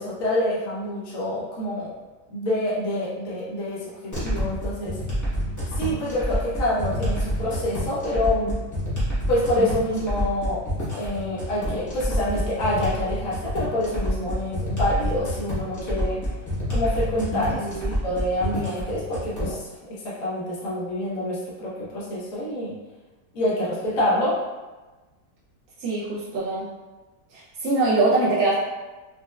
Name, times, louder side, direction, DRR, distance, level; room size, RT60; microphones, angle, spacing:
voice 1, 0.0-1.9 2.3-5.0 5.8-8.6 9.3-10.6 10.9-16.2 16.7-17.6 18.0-22.7 23.3-24.4, left 1 dB, 55° left, -7 dB, 1.2 m, -26 dB
sound 1, 4.1-19.5, equal, 15° left, 0.6 m, -28 dB
voice 2, 17.6-17.9 25.8-26.7 27.3-28.5, right 2 dB, 65° right, -8 dB, 0.8 m, -23 dB
4.2 x 2.1 x 2.2 m, 1.2 s
omnidirectional pair, 1.8 m